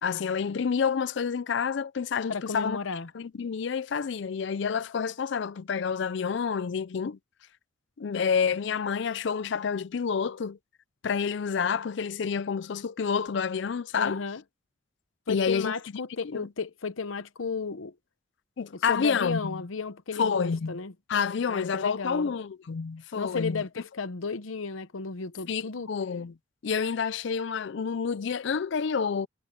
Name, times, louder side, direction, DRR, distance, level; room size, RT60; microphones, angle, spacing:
voice 1, 0.0-2.8 3.1-7.2 8.0-10.6 11.0-14.2 15.3-15.7 16.2-16.5 18.6-19.6 20.2-20.8 21.1-23.6 25.5-26.3 26.6-29.3, left 6 dB, 60° left, 0.4 m, -29 dB
voice 2, 2.3-3.1 14.0-14.4 15.3-17.9 18.7-20.9 21.5-22.3 23.1-25.9, left 4 dB, 85° left, 0.8 m, -33 dB
head